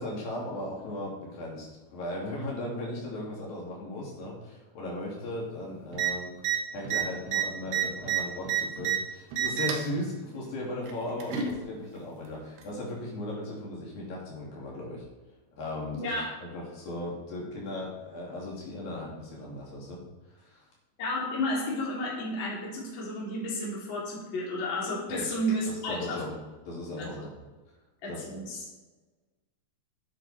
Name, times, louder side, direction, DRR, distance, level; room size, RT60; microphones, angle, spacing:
voice 1, 0.0-6.3 6.7-15.0 15.6-16.1 16.4-20.0 20.3-20.7 25.1-25.3 25.7-26.3 26.7-27.3 28.1-28.2, left 1 dB, 65° left, -4 dB, 4.4 m, -37 dB
sound 1, 5.9-6.1 6.4-6.6 6.9-9.0 9.3-9.9 10.9-11.5 12.6-12.7, right 10 dB, 85° right, 3.5 m, -28 dB
voice 2, 15.9-16.3 21.0-26.3 27.0-27.1 28.0-28.6, left 1 dB, 30° left, -5 dB, 3.5 m, -32 dB
11.5 x 10.0 x 4.3 m, 1.2 s
omnidirectional pair, 4.5 m